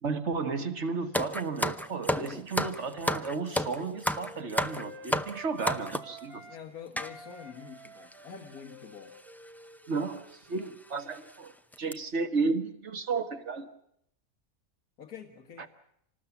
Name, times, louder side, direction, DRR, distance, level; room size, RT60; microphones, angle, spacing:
voice 1, 0.0-6.4 9.9-11.5 11.8-13.7, right 4 dB, 50° right, 9 dB, 1.8 m, -33 dB
sound 1, 1.1-6.2 7.0-7.1 7.8-8.3 9.3-9.5 9.9-10.1 10.6-10.7 11.1-11.3 11.7-11.9, left 1 dB, ahead, 0.4 m, -31 dB
Wind instrument woodwind instrument, 3.3-6.6 6.9-11.4, right 1 dB, 80° right, 4.3 m, -51 dB
voice 2, 6.4-9.1 15.0-15.8, left 7 dB, 85° left, 5 dB, 2.1 m, -46 dB
26.5 x 19.5 x 7.2 m, 0.73 s
omnidirectional pair, 1.5 m